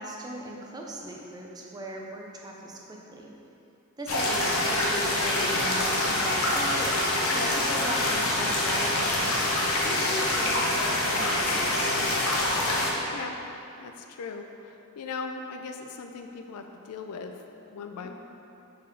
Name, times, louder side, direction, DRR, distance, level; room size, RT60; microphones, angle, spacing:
voice 1, 0.0-3.3 4.0-9.3 9.8-12.0 18.0-18.1, right 1 dB, 20° right, -1 dB, 0.6 m, -39 dB
sound 1, 4.1-12.9, left 1 dB, 65° left, 0.9 m, -25 dB
voice 2, 13.8-17.3 17.7-18.1, left 4 dB, 85° left, 5 dB, 0.4 m, -39 dB
5.2 x 4.5 x 5.3 m, 2.8 s
head